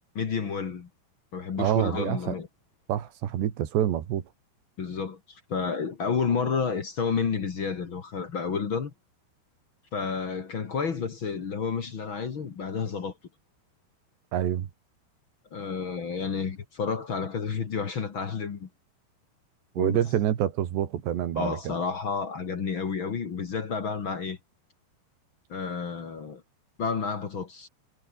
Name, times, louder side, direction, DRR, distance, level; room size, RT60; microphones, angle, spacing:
voice 1, 0.1-0.9 1.3-2.5 4.8-8.9 9.9-13.1 15.5-18.7 19.8-20.0 21.4-24.4 25.5-26.4 26.8-27.7, left 5 dB, 45° left, 1.8 m, -30 dB
voice 2, 1.6-2.4 2.9-4.2 14.3-14.7 19.8-21.7, right 11 dB, 85° right, 4.4 m, -27 dB
omnidirectional pair, 4.8 m